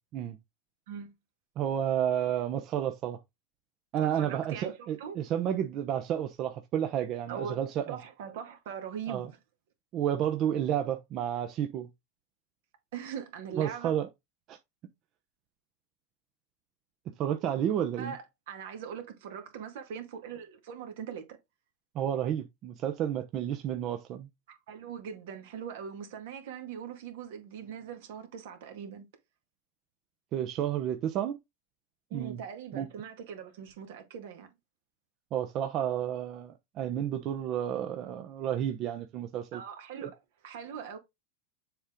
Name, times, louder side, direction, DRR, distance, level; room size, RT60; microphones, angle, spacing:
voice 1, 1.6-3.2 3.9-8.0 9.1-9.3 9.9-11.9 13.5-14.1 14.5-14.6 17.2-18.1 21.9-24.3 30.3-31.4 32.1-32.4 32.7-32.9 35.3-39.6 40.0-40.1, right 10 dB, 45° right, 0.8 m, -31 dB
voice 2, 4.0-5.2 7.3-9.4 12.9-13.9 18.0-21.3 24.5-29.1 32.1-34.5 39.5-40.2 40.4-41.0, right 7 dB, 70° right, 1.9 m, -41 dB
7.0 x 3.8 x 3.6 m
hypercardioid pair, 110°, 0 cm